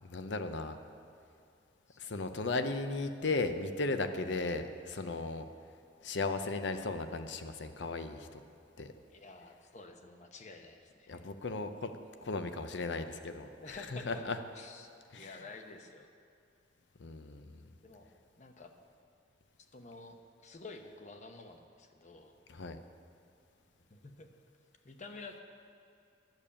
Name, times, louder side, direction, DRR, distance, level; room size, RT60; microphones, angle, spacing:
voice 1, 0.0-0.8 2.0-5.4 6.0-8.4 8.8-8.9 11.1-11.9 12.2-13.8 14.1-14.4 15.1-15.3 17.0-17.6 22.5-22.8, left 3 dB, 75° left, 8 dB, 0.7 m, -36 dB
voice 2, 9.1-11.2 13.6-14.2 14.5-16.1 17.8-18.1 18.4-18.7 19.7-22.3 23.9-24.3 24.8-25.4, left 3 dB, 40° left, 5 dB, 0.9 m, -50 dB
11.0 x 6.9 x 8.6 m, 2.5 s
head